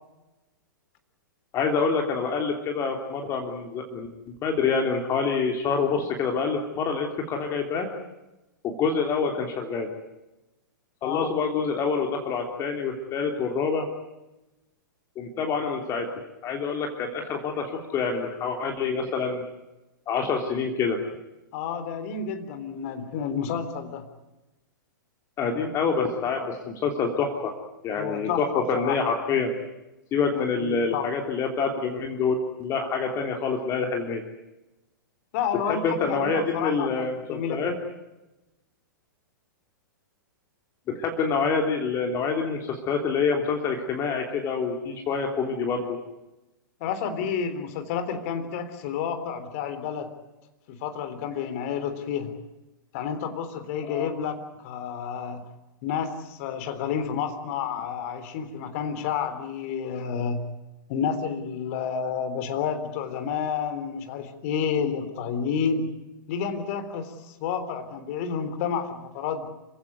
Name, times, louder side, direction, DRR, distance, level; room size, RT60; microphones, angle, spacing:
voice 1, 1.5-7.9 8.6-9.9 11.0-13.9 15.1-16.1 16.4-19.4 20.1-21.0 25.4-27.5 27.8-29.5 30.1-34.2 35.8-37.7 40.9-46.0 53.8-54.1, left 5 dB, 25° left, 3 dB, 3.3 m, -26 dB
voice 2, 21.5-24.1 27.9-29.0 30.6-31.1 35.3-37.7 46.8-50.1 50.7-52.3 52.9-54.4 54.6-55.4 55.8-60.4 60.9-65.9 66.3-69.5, left 7 dB, 45° left, 9 dB, 3.6 m, -30 dB
27.5 x 16.5 x 9.5 m, 0.99 s
figure-of-eight pair, 105°, 11 cm